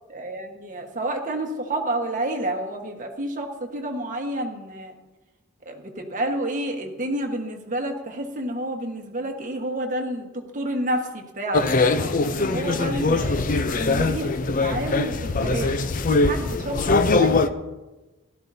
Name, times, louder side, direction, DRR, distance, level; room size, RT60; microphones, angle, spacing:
voice 1, 0.1-5.0 5.6-10.3 10.5-13.4 13.7-14.3 14.6-15.8 16.1-17.5, right 1 dB, 35° right, 2 dB, 1.4 m, -29 dB
sound 1, 11.5-17.5, left 3 dB, 40° left, 0.5 m, -22 dB
17.0 x 13.0 x 2.7 m, 1.1 s
head